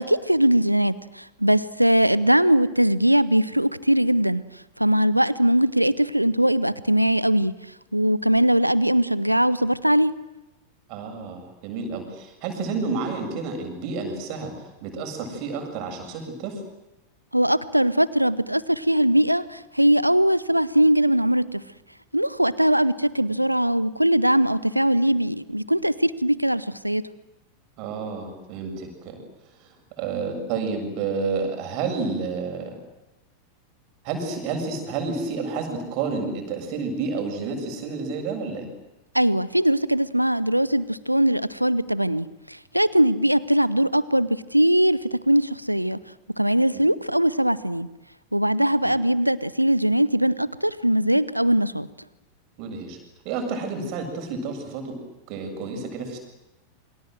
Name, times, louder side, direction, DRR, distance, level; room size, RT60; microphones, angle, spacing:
voice 1, 0.0-4.4 4.8-7.5 7.9-10.1 17.3-21.6 22.1-27.0 39.1-46.0 46.4-47.9 48.3-51.9, right 1 dB, 90° right, 18 dB, 1.0 m, -21 dB
voice 2, 10.9-16.6 27.8-29.2 29.6-32.8 34.0-38.7 46.7-46.8 48.8-48.9 52.6-53.0 53.2-55.0 55.3-56.2, right 4 dB, 45° right, 4 dB, 7.5 m, -30 dB
28.0 x 24.5 x 7.9 m, 0.96 s
figure-of-eight pair, 90°, 0 cm